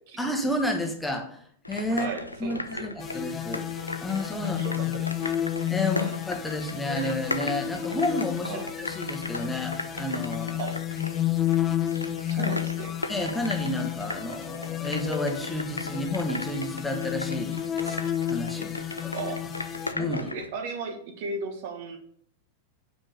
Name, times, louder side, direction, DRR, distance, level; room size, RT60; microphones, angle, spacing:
voice 1, 0.2-1.4 1.7-2.1 2.4-3.6 4.0-4.9 5.7-10.6 12.3-12.5 13.1-19.1 19.9-20.3, left 1 dB, 5° left, 3 dB, 1.2 m, -31 dB
sound 1, 1.6-20.5, left 2 dB, 85° left, 0.5 m, -38 dB
voice 2, 1.9-2.9 4.4-5.4 5.9-6.1 8.4-8.7 10.6-10.8 11.5-11.8 12.3-12.9 19.1-19.4 20.0-22.0, right 4 dB, 50° right, 5 dB, 1.3 m, -36 dB
sound 2, 3.0-19.9, left 12 dB, 25° left, 0.5 m, -31 dB
5.9 x 5.2 x 6.4 m, 0.62 s
figure-of-eight pair, 90°, 0 cm